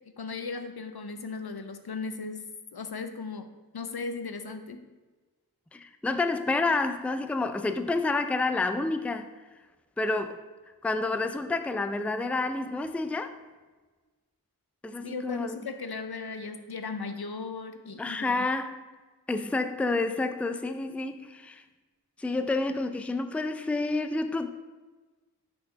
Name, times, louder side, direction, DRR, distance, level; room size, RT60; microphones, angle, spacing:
voice 1, 0.2-2.4 2.7-3.5 3.7-4.8 15.0-18.5, left 4 dB, 75° left, 0.7 m, -37 dB
voice 2, 5.7-9.3 10.0-10.4 10.8-13.3 14.8-15.6 18.0-18.9 19.3-21.6 22.2-24.5, left 3 dB, 5° left, 0.4 m, -29 dB
6.5 x 4.4 x 5.7 m
wide cardioid pair, 65°, 38 cm